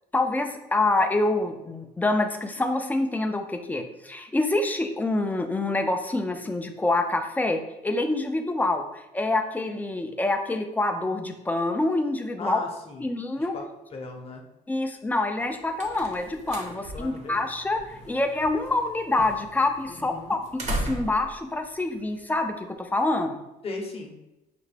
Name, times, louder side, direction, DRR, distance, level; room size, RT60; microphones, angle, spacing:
voice 1, 0.1-12.6 13.0-13.5 14.7-20.4 20.7-23.4, left 2 dB, 10° left, 5 dB, 0.4 m, -26 dB
voice 2, 12.4-13.1 13.4-13.6 13.9-14.4 16.9-17.5 18.0-18.1 19.9-20.4 23.6-24.1, left 3 dB, 35° left, 2 dB, 0.8 m, -37 dB
sound 1, 15.3-22.7, right 1 dB, 40° right, 0.8 m, -38 dB
5.8 x 2.1 x 3.2 m, 0.94 s
cardioid pair, 110°, 17 cm